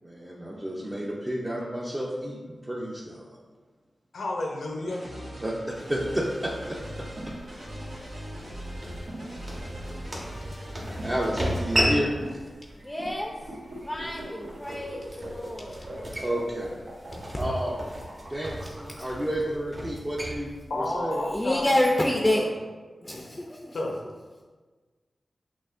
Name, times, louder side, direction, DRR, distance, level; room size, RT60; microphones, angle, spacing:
voice 1, 0.0-3.4 5.4-6.8 7.5-7.7 10.7-12.1 16.2-16.8 17.4-17.8 18.3-21.2, equal, 25° right, -5 dB, 0.6 m, -31 dB
voice 2, 4.1-5.1 20.7-21.8 22.3-22.5 23.7-24.0, left 2 dB, 85° left, -1 dB, 0.6 m, -31 dB
sound 1, 4.9-11.8, equal, 85° right, 1.2 m, -40 dB
sound 2, 5.7-21.8, equal, 45° right, 1.3 m, -35 dB
sound 3, 6.7-19.2, right 1 dB, 65° right, 0.8 m, -42 dB
voice 3, 12.8-13.3 13.9-16.2 21.3-22.4 23.0-23.8, left 1 dB, 20° left, 0 dB, 0.5 m, -28 dB
6.0 x 2.6 x 2.5 m, 1.4 s
cardioid pair, 50°, 0 cm